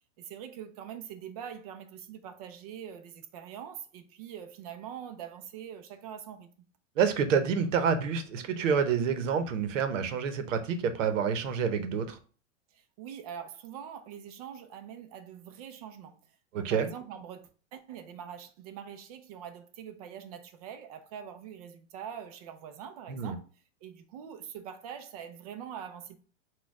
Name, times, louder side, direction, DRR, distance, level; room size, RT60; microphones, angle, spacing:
voice 1, 0.2-6.5 12.7-16.2 16.5-23.5 23.8-26.2, right 8 dB, 30° right, 0.4 m, -44 dB
voice 2, 7.0-12.2 16.5-16.9 23.1-23.4, right 6 dB, 75° right, 0.8 m, -28 dB
4.2 x 2.3 x 4.6 m
supercardioid pair, 165°, 38 cm